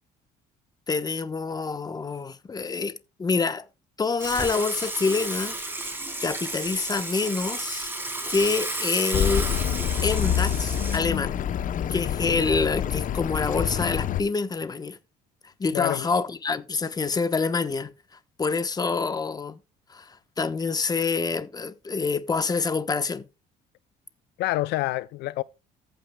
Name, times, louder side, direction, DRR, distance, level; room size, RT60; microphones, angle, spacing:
voice 1, 0.9-2.9 3.2-3.7 4.0-6.0 6.2-7.9 8.3-9.5 10.0-11.4 11.9-15.0 15.6-17.9 18.4-19.6 19.9-23.3, left 4 dB, 25° left, 1.0 m, -27 dB
Water / Water tap faucet / Sink (filling or washing), 4.2-11.0, right 2 dB, 15° right, 3.6 m, -32 dB
Accelerating revving vroom, 9.1-14.2, left 10 dB, 50° left, 0.8 m, -27 dB
voice 2, 15.7-16.1 24.4-25.4, left 17 dB, 80° left, 0.4 m, -27 dB
14.0 x 8.9 x 2.3 m
cardioid pair, 110°, 17 cm